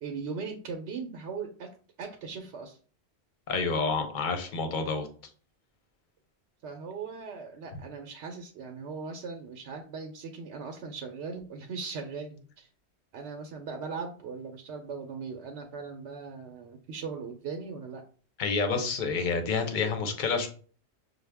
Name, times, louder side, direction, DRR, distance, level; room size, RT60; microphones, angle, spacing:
voice 1, 0.0-2.8 6.6-12.7 13.1-18.0, right 5 dB, 85° right, 3 dB, 0.9 m, -39 dB
voice 2, 3.5-5.1 18.4-20.5, left 4 dB, 50° left, 6 dB, 0.8 m, -28 dB
6.0 x 2.1 x 3.4 m, 0.41 s
omnidirectional pair, 1.1 m